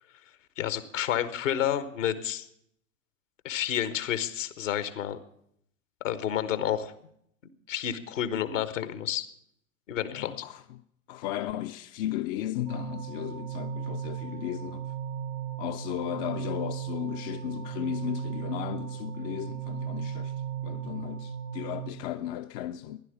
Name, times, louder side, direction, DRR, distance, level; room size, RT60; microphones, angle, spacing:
voice 1, 0.6-2.5 3.4-5.2 6.0-6.9 7.7-9.3 9.9-10.3, left 10 dB, 65° left, 1.3 m, -30 dB
voice 2, 10.1-10.8 11.1-14.9 15.6-23.0, left 12 dB, 45° left, 0.7 m, -35 dB
sound 1, 12.7-21.9, right 9 dB, 85° right, 1.5 m, -36 dB
15.5 x 11.0 x 7.0 m
figure-of-eight pair, 80°, 41 cm